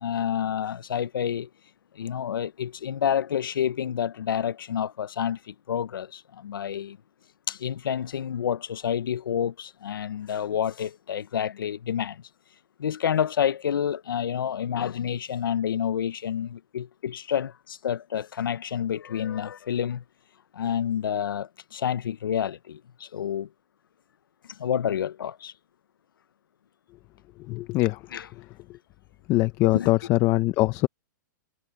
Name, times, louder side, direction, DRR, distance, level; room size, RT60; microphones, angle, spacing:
voice 1, 0.0-1.5 2.0-7.0 7.5-12.2 12.8-20.0 20.5-23.5 24.6-25.5 28.1-28.3 29.7-29.9, left 9 dB, 85° left, 1.0 m, -29 dB
voice 2, 27.5-28.0 29.3-30.9, left 19 dB, 30° left, 0.9 m, -22 dB
hypercardioid pair, 145°, 11 cm